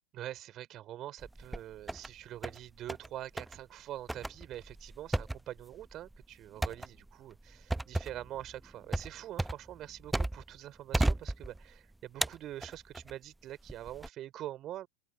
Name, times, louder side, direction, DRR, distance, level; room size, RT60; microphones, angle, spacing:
voice 1, 0.1-14.9, right 13 dB, 30° right, 3.9 m, -44 dB
sound 1, 1.2-2.1 2.4-3.1 3.4-3.6 4.1-10.6 10.9-11.8 12.2-13.1 13.7-14.1, right 2 dB, 5° right, 1.1 m, -34 dB
open air
figure-of-eight pair, 90°, 0 cm